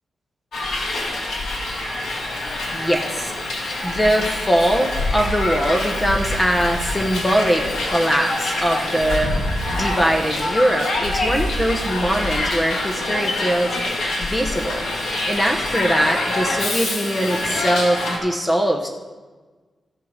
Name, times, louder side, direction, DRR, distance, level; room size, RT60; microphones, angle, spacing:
Hiss, 0.5-18.2, left 1 dB, 90° left, 2.0 m, -25 dB
voice 1, 2.7-14.9 15.3-18.9, equal, 15° left, 2 dB, 1.0 m, -22 dB
13.5 x 5.6 x 6.5 m, 1.3 s
wide cardioid pair, 105°, 0 cm